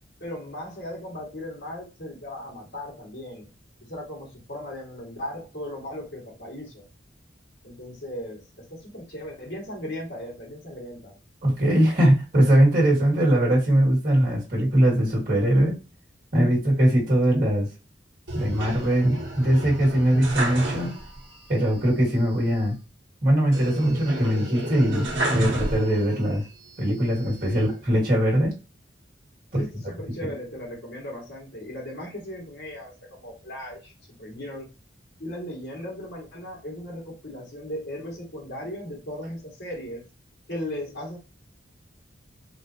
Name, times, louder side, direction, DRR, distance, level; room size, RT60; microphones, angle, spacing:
voice 1, 0.2-3.5 3.9-6.8 7.6-8.4 8.7-11.2 27.5-27.7 29.6-33.9 34.2-34.7 35.2-40.0 40.5-41.2, left 1 dB, 65° left, -2 dB, 1.8 m, -37 dB
voice 2, 11.4-15.8 16.3-17.7 18.3-20.9 21.5-22.7 23.2-25.1 25.3-26.4 26.8-28.5 29.5-29.6, right 1 dB, 50° right, -3 dB, 1.8 m, -21 dB
sound 1, 18.3-21.3 21.6-21.7 23.5-26.3 26.8-27.6, right 1 dB, 90° right, 1.1 m, -30 dB
3.7 x 2.5 x 2.8 m, 0.29 s
head